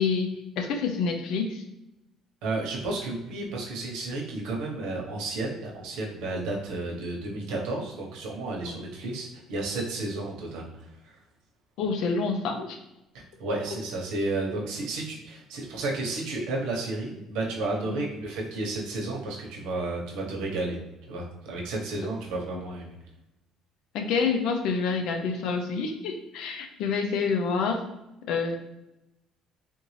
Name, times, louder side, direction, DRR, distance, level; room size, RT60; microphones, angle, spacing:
voice 1, 0.0-1.6 8.7-8.8 11.8-12.8 17.9-18.0 22.5-22.6 23.9-27.8 28.3-28.6, left 5 dB, 65° left, 4 dB, 0.5 m, -28 dB
voice 2, 2.4-10.7 11.0-11.2 13.4-20.8 21.1-22.9, right 2 dB, 90° right, -1 dB, 1.0 m, -32 dB
3.5 x 2.6 x 3.2 m, 0.92 s
cardioid pair, 175°, 0 cm